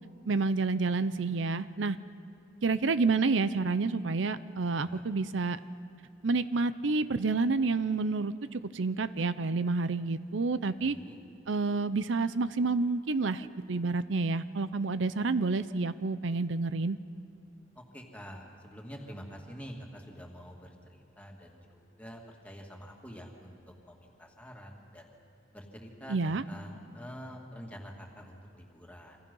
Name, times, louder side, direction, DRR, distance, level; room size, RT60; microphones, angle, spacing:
voice 1, 0.3-2.0 2.6-5.6 6.2-11.0 11.5-17.0 26.1-26.4, right 3 dB, 75° right, 14 dB, 0.6 m, -29 dB
voice 2, 4.7-5.0 10.7-11.2 17.8-23.6 23.8-25.1 25.5-29.2, equal, 10° left, 0 dB, 2.4 m, -47 dB
27.0 x 25.5 x 5.5 m, 2.6 s
head